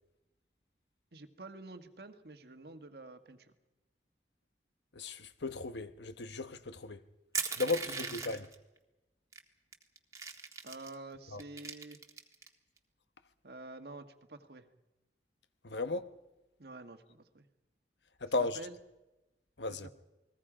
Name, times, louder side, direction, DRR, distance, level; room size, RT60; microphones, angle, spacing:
voice 1, 1.1-3.5 7.8-8.4 10.6-12.0 13.4-14.7 16.6-17.5 18.3-18.8 19.7-19.9, right 2 dB, 65° right, 1.4 m, -49 dB
voice 2, 4.9-7.0 7.6-8.5 11.3-11.4 15.6-16.1 18.2-18.6 19.6-19.9, left 3 dB, 85° left, 1.1 m, -35 dB
Crushing, 7.3-8.5 9.3-9.4 9.7-10.9 11.4-12.5, right 5 dB, 20° right, 1.5 m, -38 dB
29.0 x 20.5 x 5.0 m
head